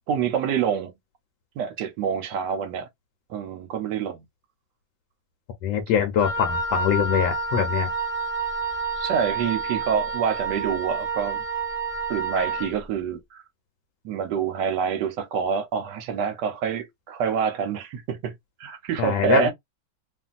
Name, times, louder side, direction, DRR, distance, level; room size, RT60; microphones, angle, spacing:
voice 1, 0.1-1.0 1.6-2.9 3.3-4.3 9.0-11.4 12.1-13.4 14.0-18.3 18.6-19.5, right 7 dB, 70° right, 1.1 m, -27 dB
voice 2, 5.6-7.9 19.0-19.5, left 8 dB, 80° left, 1.3 m, -23 dB
Wind instrument woodwind instrument, 6.2-12.7, right 3 dB, 10° right, 1.2 m, -29 dB
2.9 x 2.6 x 2.4 m
omnidirectional pair, 2.1 m